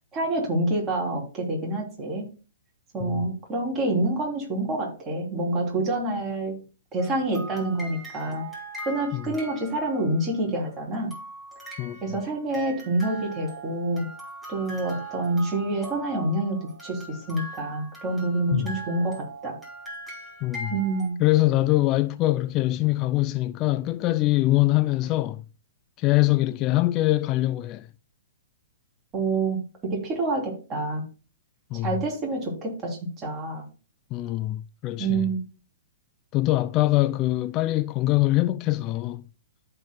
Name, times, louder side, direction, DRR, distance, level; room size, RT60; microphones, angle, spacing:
voice 1, 0.1-2.3 2.9-6.6 6.9-8.5 8.8-11.1 12.0-14.1 14.5-19.6 20.7-21.2 29.1-31.0 31.8-33.7 35.0-35.4, right 2 dB, 20° right, 3.0 m, -27 dB
sound 1, 7.0-10.4 11.1-21.1, right 2 dB, 5° right, 2.9 m, -41 dB
voice 2, 20.4-20.7 21.2-25.4 26.0-27.9 31.7-32.0 34.1-35.3 36.3-39.2, left 17 dB, 30° left, 0.4 m, -23 dB
14.0 x 4.6 x 2.2 m
hypercardioid pair, 120°, 0 cm